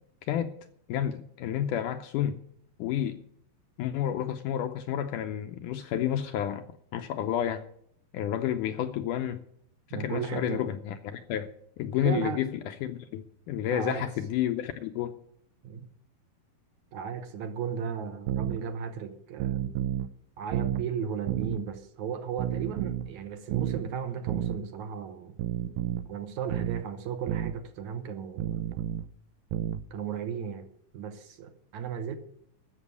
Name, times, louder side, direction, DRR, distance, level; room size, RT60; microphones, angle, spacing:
voice 1, 0.9-2.4 2.8-3.2 3.8-6.6 6.9-7.6 8.1-9.4 9.9-11.5 11.8-15.2, left 10 dB, 80° left, 1.9 m, -30 dB
voice 2, 9.9-10.7 12.0-12.4 13.7-14.1 15.6-15.9 16.9-19.7 20.4-25.4 26.1-28.6 29.9-30.7 30.9-32.2, right 7 dB, 70° right, 2.0 m, -35 dB
sound 1, 18.3-18.6 19.4-20.1 20.5-20.9 21.3-21.6 22.4-23.1 23.5-23.8 24.3-24.6 25.4-26.1 26.5-26.8 27.3-27.6 28.4-29.1 29.5-29.9, right 11 dB, 90° right, 1.7 m, -31 dB
12.5 x 7.4 x 8.2 m
omnidirectional pair, 4.3 m